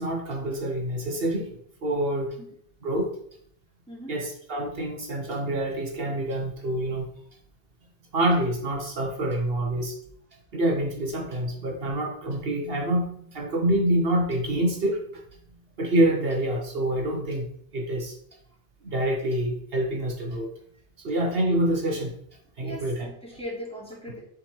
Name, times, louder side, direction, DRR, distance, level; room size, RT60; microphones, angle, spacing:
voice 1, 0.0-1.6 1.8-2.4 2.8-3.1 4.1-7.1 8.1-10.0 10.5-15.2 15.8-17.5 17.7-18.1 18.8-20.5 21.0-22.1 22.6-23.1, right 1 dB, 70° right, 1 dB, 1.3 m, -26 dB
voice 2, 22.6-24.2, equal, 5° left, -7 dB, 2.6 m, -38 dB
7.3 x 3.9 x 4.5 m, 0.66 s
omnidirectional pair, 1.0 m